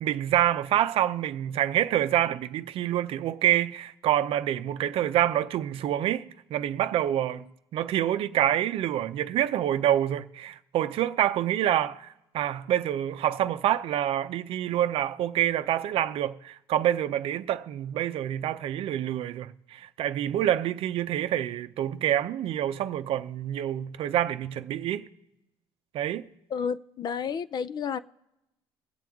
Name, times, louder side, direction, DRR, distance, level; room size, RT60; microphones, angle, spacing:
voice 1, 0.0-7.5 7.7-25.1 25.9-26.3, right 11 dB, 60° right, 0.6 m, -27 dB
voice 2, 26.5-28.0, left 6 dB, 40° left, 0.4 m, -31 dB
21.5 x 7.6 x 3.6 m
cardioid pair, 105°, 11 cm